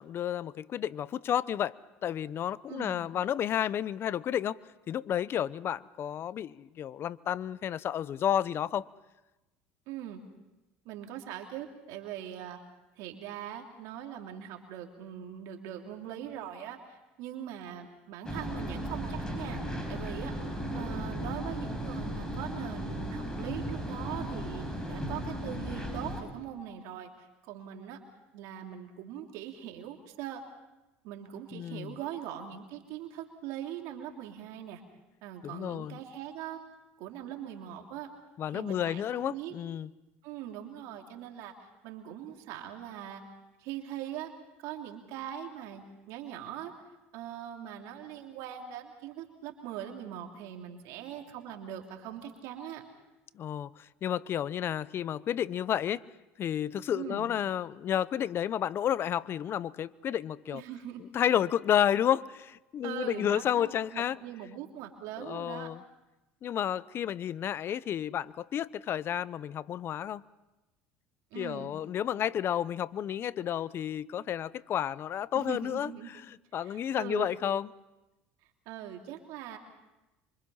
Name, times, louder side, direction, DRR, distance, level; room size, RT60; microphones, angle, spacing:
voice 1, 0.0-1.7 2.0-4.6 4.9-8.9 31.5-32.0 35.4-36.0 38.4-39.9 53.4-56.0 56.4-60.6 61.1-64.2 65.3-65.8 66.4-70.2 71.3-75.9 76.3-77.7, left 10 dB, 45° left, 0.8 m, -31 dB
voice 2, 2.7-3.0 9.9-10.2 10.8-12.6 13.0-19.6 19.9-20.3 20.7-28.0 28.3-30.4 31.0-34.8 35.2-36.6 37.0-38.1 38.5-39.5 40.2-43.2 43.6-44.3 44.6-46.7 47.1-52.8 56.9-57.3 60.5-61.0 62.8-65.7 71.3-71.7 75.3-76.1 76.6-77.3 78.6-79.6, right 10 dB, 70° right, 3.1 m, -41 dB
sound 1, 18.2-26.2, equal, 10° left, 6.1 m, -36 dB
26.5 x 24.5 x 5.7 m
supercardioid pair, 90°, 6 cm